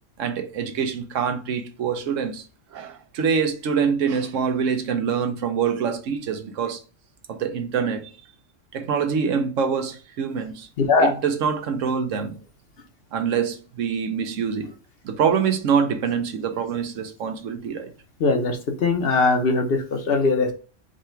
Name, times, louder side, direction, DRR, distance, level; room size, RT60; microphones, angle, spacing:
voice 1, 0.2-2.4 2.7-6.8 7.3-8.1 8.7-10.7 11.0-12.4 13.1-14.7 15.0-17.9, right 6 dB, 90° right, 1.1 m, -25 dB
voice 2, 10.8-11.1 18.2-20.5, left 3 dB, 55° left, 0.9 m, -20 dB
4.9 x 2.3 x 4.4 m
omnidirectional pair, 1.3 m